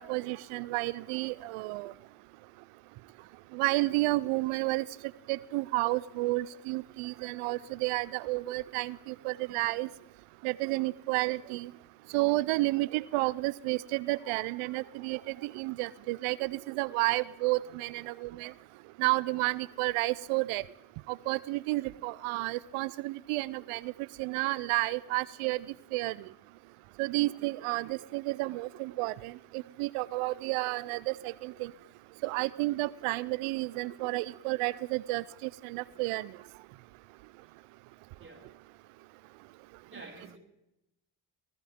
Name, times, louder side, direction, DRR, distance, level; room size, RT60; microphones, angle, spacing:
voice 1, 0.0-1.9 3.5-4.8 5.3-9.9 10.4-11.7 12.1-18.5 19.0-20.6 21.1-23.9 24.2-25.6 25.9-26.1 27.0-29.3 29.8-31.7 32.2-36.3, right 20 dB, 85° right, 22 dB, 0.5 m, -31 dB
voice 2, 39.9-40.4, right 2 dB, 25° right, 0 dB, 5.4 m, -48 dB
22.0 x 18.0 x 3.6 m, 0.89 s
supercardioid pair, 45°, 50 cm